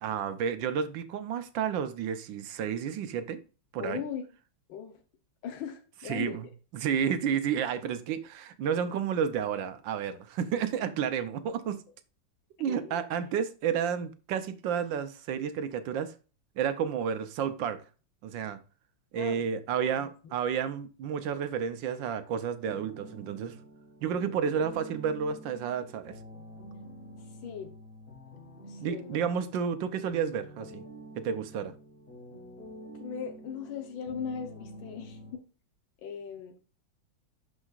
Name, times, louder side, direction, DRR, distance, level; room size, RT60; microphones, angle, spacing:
voice 1, 0.0-3.4 3.7-4.0 6.1-6.5 6.7-11.8 12.6-16.1 16.6-17.8 18.2-18.6 19.1-23.6 24.0-26.1 28.8-30.8 31.2-31.7, right 7 dB, 75° right, 1.4 m, -31 dB
voice 2, 3.8-4.2 4.7-5.0 5.4-6.4 11.6-11.7 12.6-13.0 19.1-19.4 19.7-20.3 27.2-27.7 28.6-29.3 33.0-35.2 36.0-36.6, left 7 dB, 90° left, 1.7 m, -39 dB
sound 1, 22.6-35.3, equal, 45° left, 2.4 m, -48 dB
11.5 x 4.9 x 2.4 m
omnidirectional pair, 2.1 m